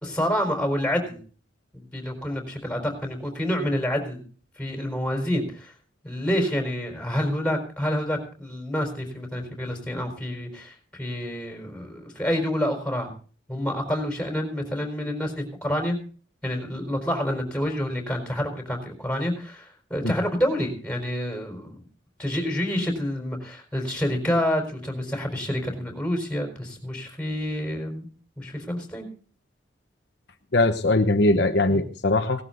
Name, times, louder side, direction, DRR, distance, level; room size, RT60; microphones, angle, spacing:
voice 1, 0.0-1.2 1.7-4.2 4.6-5.7 6.0-13.1 13.5-16.0 16.4-21.8 22.2-28.1 28.4-29.1 31.7-31.8, equal, 5° left, 3 dB, 4.2 m, -28 dB
voice 2, 30.5-32.4, left 2 dB, 65° left, 6 dB, 1.0 m, -21 dB
18.0 x 12.5 x 3.9 m, 0.40 s
head